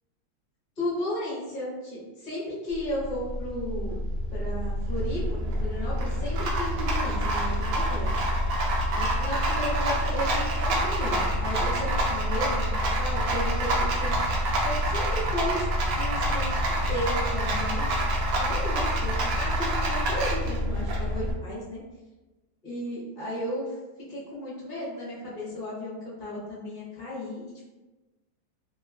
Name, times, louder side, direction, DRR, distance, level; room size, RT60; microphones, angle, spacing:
voice 1, 0.8-4.0 4.3-8.1 8.9-14.1 14.6-15.6 15.9-16.6 16.9-17.9 18.4-21.8 22.6-23.8 24.1-27.6, equal, 35° left, -8 dB, 0.8 m, -34 dB
Rattle, 2.7-21.3, right 1 dB, 75° right, 0.8 m, -27 dB
3.2 x 3.1 x 2.2 m, 1.1 s
omnidirectional pair, 2.2 m